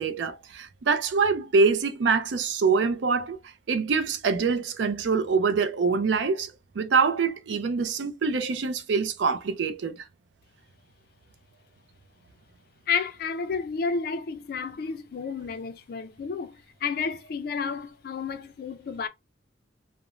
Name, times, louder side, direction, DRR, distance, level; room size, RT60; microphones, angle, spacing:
voice 1, 0.0-3.4 3.7-10.0, right 5 dB, 75° right, 0.4 m, -25 dB
voice 2, 12.9-19.1, left 5 dB, 55° left, 0.3 m, -31 dB
2.4 x 2.0 x 3.0 m
head